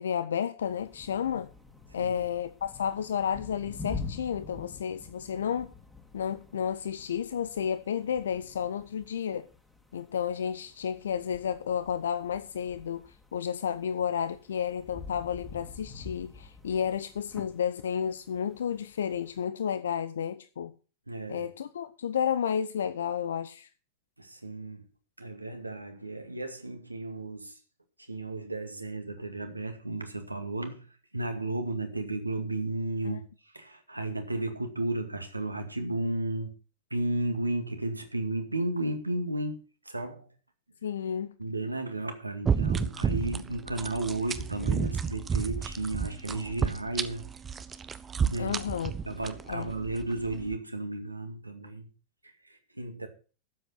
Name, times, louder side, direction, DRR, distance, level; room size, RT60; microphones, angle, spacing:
voice 1, 0.0-1.5 1.9-5.7 6.1-9.5 9.9-20.7 21.3-23.7 33.0-33.2 40.8-41.3 48.4-48.9 49.5-49.7, left 8 dB, 65° left, 0.6 m, -31 dB
sound 1, 0.6-19.5, left 4 dB, 5° left, 2.4 m, -47 dB
voice 2, 21.1-21.5 24.2-24.8 25.2-27.6 28.0-36.5 36.9-40.3 41.4-47.2 48.2-48.6 49.1-51.9 52.2-53.1, right 2 dB, 85° right, 2.1 m, -34 dB
sound 2, 42.4-50.6, right 6 dB, 20° right, 0.9 m, -31 dB
12.5 x 7.9 x 5.8 m
figure-of-eight pair, 90°, 0 cm